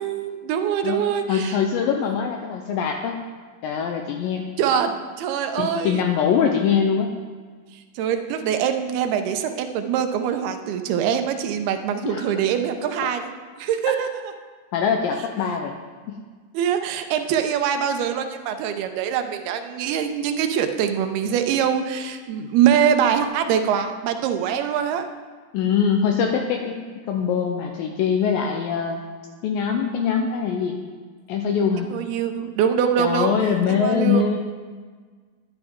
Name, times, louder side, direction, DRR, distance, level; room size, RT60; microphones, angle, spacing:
voice 1, 0.0-1.6 4.6-6.0 8.0-13.3 13.6-14.1 16.5-25.1 31.9-33.3 33.7-34.2, right 8 dB, 80° right, 7 dB, 2.6 m, -23 dB
voice 2, 0.8-3.2 3.6-4.5 5.6-7.2 12.1-12.3 13.8-13.9 14.7-15.7 16.1-16.2 25.5-26.8 27.1-29.0 29.4-30.8 31.3-31.9 33.0-34.4, left 7 dB, 80° left, 3 dB, 2.2 m, -23 dB
11.5 x 11.0 x 3.6 m, 1.5 s
omnidirectional pair, 4.6 m